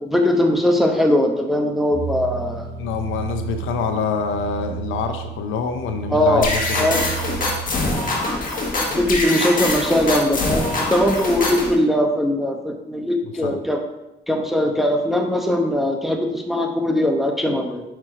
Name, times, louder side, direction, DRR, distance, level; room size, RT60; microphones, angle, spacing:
voice 1, 0.0-2.7 6.1-6.5 6.8-7.1 8.8-13.8 14.3-17.8, left 1 dB, ahead, 2 dB, 1.0 m, -20 dB
sound 1, 1.9-7.7, right 10 dB, 90° right, 1.8 m, -32 dB
voice 2, 2.8-7.0 13.4-13.6, left 5 dB, 85° left, 6 dB, 0.7 m, -26 dB
sound 2, 6.4-11.7, left 2 dB, 45° left, 1.7 m, -23 dB
5.7 x 4.7 x 4.9 m, 0.94 s
cardioid pair, 90°, 20 cm